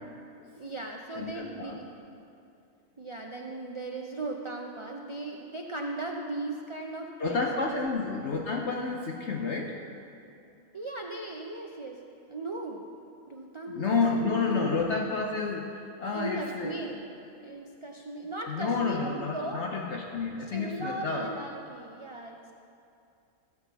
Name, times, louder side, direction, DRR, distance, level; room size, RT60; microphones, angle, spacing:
voice 1, 0.6-2.1 3.0-7.4 7.7-7.8 10.7-12.0 12.3-12.8 13.3-14.7 16.1-17.0 17.4-19.6 20.5-22.5, right 2 dB, 50° right, 1 dB, 0.3 m, -37 dB
voice 2, 1.2-1.8 7.2-9.8 13.7-16.8 18.5-21.3, left 4 dB, 60° left, 0 dB, 1.0 m, -30 dB
16.5 x 7.9 x 4.1 m, 2.6 s
omnidirectional pair, 1.5 m